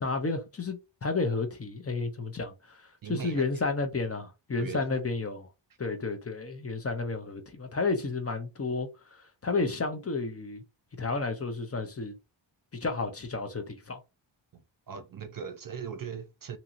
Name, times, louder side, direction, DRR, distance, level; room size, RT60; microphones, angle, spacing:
voice 1, 0.0-2.8 3.1-5.5 5.8-10.6 11.0-12.1 12.8-14.0, left 3 dB, 30° left, 0.6 m, -31 dB
voice 2, 3.0-3.4 4.6-4.8 14.5-14.6 14.9-16.6, right 7 dB, 50° right, 0.5 m, -39 dB
2.8 x 2.8 x 2.5 m
wide cardioid pair, 110°, 46 cm